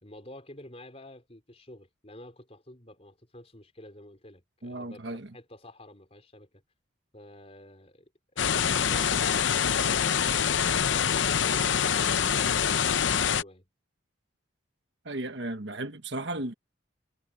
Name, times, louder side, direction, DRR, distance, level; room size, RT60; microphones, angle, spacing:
voice 1, 0.0-6.6 7.1-13.7, left 1 dB, 30° left, 4.7 m, -49 dB
voice 2, 4.6-5.3 15.0-16.5, right 2 dB, 60° right, 1.3 m, -35 dB
sound 1, 8.4-13.4, left 8 dB, 65° left, 0.7 m, -25 dB
head